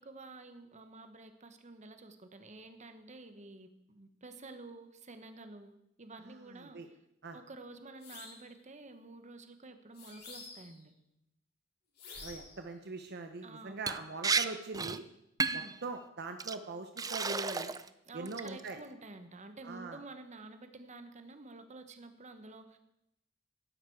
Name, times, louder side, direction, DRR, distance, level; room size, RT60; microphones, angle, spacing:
voice 1, 0.0-5.7 6.0-6.8 7.3-10.9 13.4-13.8 15.5-15.7 18.1-22.8, right 2 dB, 35° right, 8 dB, 1.2 m, -50 dB
voice 2, 6.3-6.9 7.2-7.4 12.2-15.0 15.5-17.7 18.1-18.8 19.6-20.0, right 3 dB, 55° right, 6 dB, 0.9 m, -42 dB
sound 1, 8.0-8.5 9.9-10.8 12.0-12.6, left 4 dB, 55° left, 5.2 m, -49 dB
Liquid, 13.9-14.0 14.2-14.4 14.7-15.0 15.4-15.7 16.4-16.5 17.0-17.9 18.2-18.7, right 4 dB, 20° right, 0.5 m, -32 dB
16.5 x 11.5 x 4.7 m, 0.84 s
head